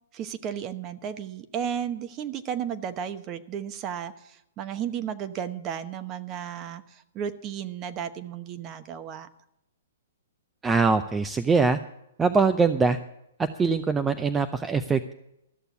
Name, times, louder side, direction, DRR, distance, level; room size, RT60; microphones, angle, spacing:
voice 1, 0.1-6.8 7.1-9.3, right 8 dB, 30° right, 11 dB, 1.0 m, -33 dB
voice 2, 10.6-11.8 12.2-13.0 13.4-15.1, right 4 dB, 15° right, 9 dB, 0.6 m, -23 dB
13.5 x 6.8 x 9.4 m, 0.81 s
hypercardioid pair, 135°, 0 cm